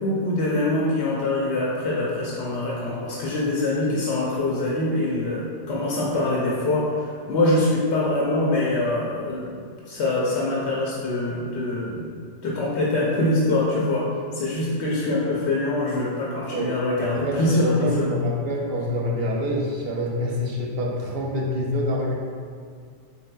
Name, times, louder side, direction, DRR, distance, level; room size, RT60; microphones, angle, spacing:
voice 1, 0.0-9.6 9.9-14.1 14.3-18.0, left 2 dB, 75° left, -5 dB, 0.9 m, -24 dB
voice 2, 16.5-22.1, left 1 dB, 65° right, -2 dB, 0.7 m, -26 dB
4.2 x 3.4 x 2.2 m, 2.1 s
omnidirectional pair, 1.2 m